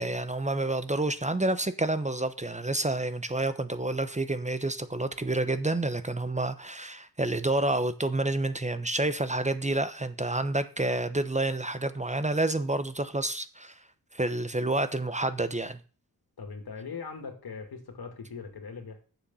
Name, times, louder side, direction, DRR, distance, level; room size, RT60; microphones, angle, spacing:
voice 1, 0.0-13.7 14.1-15.8, right 2 dB, 20° right, 0.9 m, -29 dB
voice 2, 16.4-19.0, left 5 dB, 80° left, 2.5 m, -40 dB
8.5 x 7.2 x 5.6 m
cardioid pair, 60°, 37 cm